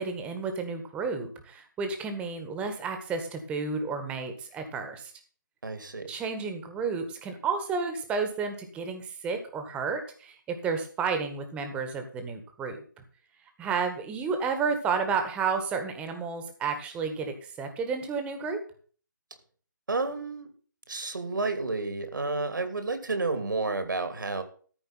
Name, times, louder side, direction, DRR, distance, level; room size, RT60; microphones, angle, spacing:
voice 1, 0.0-5.1 6.1-12.8 13.6-18.6, right 5 dB, 10° right, 6 dB, 1.7 m, -31 dB
voice 2, 5.6-6.1 19.9-20.5 20.9-24.4, right 3 dB, 75° right, 9 dB, 2.8 m, -30 dB
14.0 x 5.1 x 9.0 m, 0.43 s
figure-of-eight pair, 150°, 11 cm